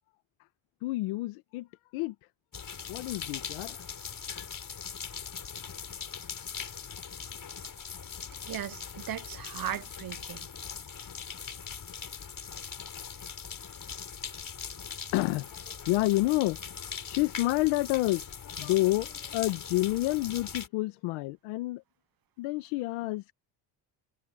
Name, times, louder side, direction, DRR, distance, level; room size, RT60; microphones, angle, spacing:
voice 1, 0.8-1.7 1.9-2.1 2.9-3.8 4.3-4.5 15.1-16.6 17.1-21.8 22.4-23.2, left 19 dB, 90° left, 1.6 m, -29 dB
sound 1, 2.5-20.7, left 7 dB, 40° left, 5.4 m, -41 dB
voice 2, 8.5-10.5, right 11 dB, 45° right, 1.0 m, -37 dB
supercardioid pair, 75°, 48 cm